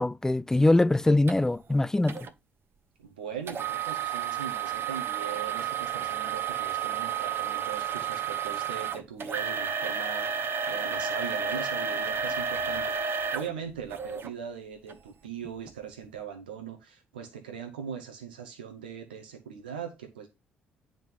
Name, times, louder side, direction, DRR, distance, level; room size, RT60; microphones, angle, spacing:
voice 1, 0.0-2.3, left 2 dB, 10° left, 0.3 m, -23 dB
sound 1, 1.3-1.4 2.1-2.3 3.5-14.3 14.9-15.0 15.6-15.7, right 7 dB, 50° right, 0.9 m, -31 dB
voice 2, 3.0-20.3, right 7 dB, 90° right, 0.9 m, -40 dB
9.0 x 3.8 x 5.6 m
hypercardioid pair, 50°, 5 cm